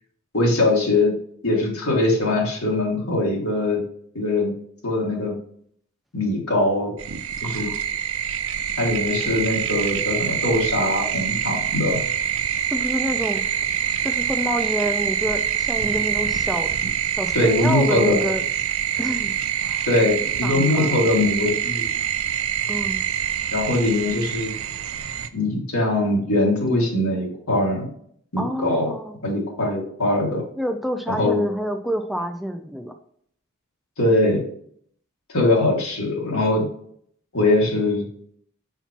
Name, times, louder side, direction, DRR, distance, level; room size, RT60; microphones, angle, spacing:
voice 1, 0.3-1.1 1.4-3.8 4.1-4.5 4.8-5.3 6.1-6.9 7.4-7.7 8.8-12.0 17.3-18.2 19.9-21.8 23.5-24.5 25.3-27.9 28.3-28.9 29.2-30.4 31.2-31.4 34.0-34.4 35.3-36.7 37.3-38.0, left 2 dB, 85° left, -1 dB, 2.1 m, -21 dB
sound 1, 7.0-25.3, right 9 dB, 70° right, 0.5 m, -25 dB
voice 2, 7.4-7.8 12.7-13.4 14.0-16.7 17.2-18.4 19.0-19.4 20.4-21.0 22.7-23.0 28.4-29.2 30.6-32.9, equal, ahead, 6 dB, 0.3 m, -28 dB
5.7 x 5.7 x 2.9 m, 0.64 s
head